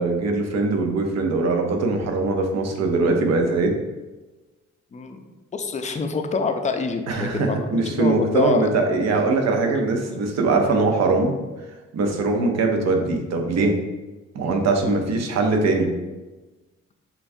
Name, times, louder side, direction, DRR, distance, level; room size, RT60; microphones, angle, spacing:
voice 1, 0.0-3.8 7.1-11.4 11.9-13.8 14.3-15.9, right 3 dB, 60° right, 3 dB, 0.8 m, -21 dB
voice 2, 4.9-5.2 5.5-7.6 7.9-8.7 9.5-9.7 14.8-15.1, left 4 dB, 25° left, 6 dB, 0.4 m, -26 dB
6.8 x 2.4 x 2.6 m, 1.2 s
cardioid pair, 90°, 30 cm